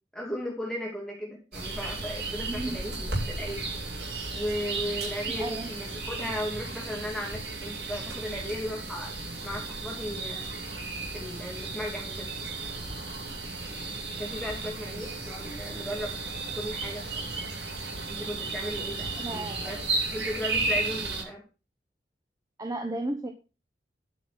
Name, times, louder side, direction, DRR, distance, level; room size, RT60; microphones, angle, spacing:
voice 1, 0.1-3.7 4.3-9.1 9.4-10.5 11.1-12.3 14.2-16.1 16.5-17.3 18.1-19.8 20.1-21.4, equal, 5° left, -2 dB, 2.3 m, -36 dB
sound 1, 1.5-21.2, right 3 dB, 80° right, 6.5 m, -34 dB
voice 2, 2.5-2.8 5.4-5.7 19.2-19.8 22.6-23.3, right 2 dB, 20° right, 4 dB, 1.1 m, -34 dB
12.0 x 5.8 x 6.2 m, 0.32 s
head